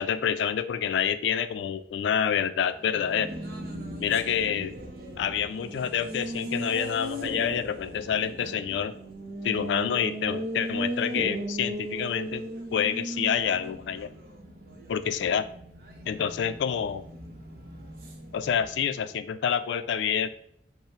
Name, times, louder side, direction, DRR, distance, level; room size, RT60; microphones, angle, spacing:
voice 1, 0.0-3.3 4.0-4.7 5.2-8.9 9.4-12.4 12.7-14.1 14.9-15.5 16.1-17.0 18.3-20.3, left 8 dB, 80° left, 12 dB, 0.3 m, -27 dB
Race car auto racing, 2.7-19.0, right 1 dB, 55° right, 0.8 m, -37 dB
5.5 x 2.0 x 4.3 m, 0.68 s
head